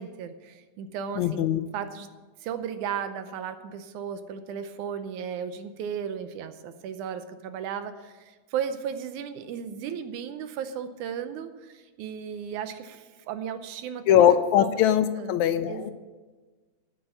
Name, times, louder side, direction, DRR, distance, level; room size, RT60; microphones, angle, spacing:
voice 1, 0.0-1.5 1.7-2.1 2.4-14.3 14.6-14.9 15.2-15.4 15.7-15.9, right 8 dB, 80° right, 9 dB, 2.2 m, -35 dB
voice 2, 1.2-1.6 14.1-15.9, left 10 dB, 80° left, 11 dB, 1.9 m, -21 dB
10.0 x 8.8 x 8.0 m, 1.3 s
omnidirectional pair, 3.5 m